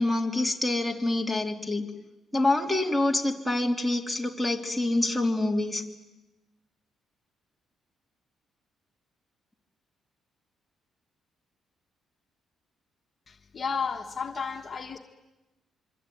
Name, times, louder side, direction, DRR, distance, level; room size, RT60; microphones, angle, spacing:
voice 1, 0.0-1.9 2.3-5.8, left 2 dB, ahead, 0 dB, 3.3 m, -26 dB
voice 2, 13.3-15.0, left 5 dB, 40° left, 3 dB, 1.7 m, -33 dB
25.5 x 24.5 x 9.4 m, 1.1 s
cardioid pair, 90°, 0 cm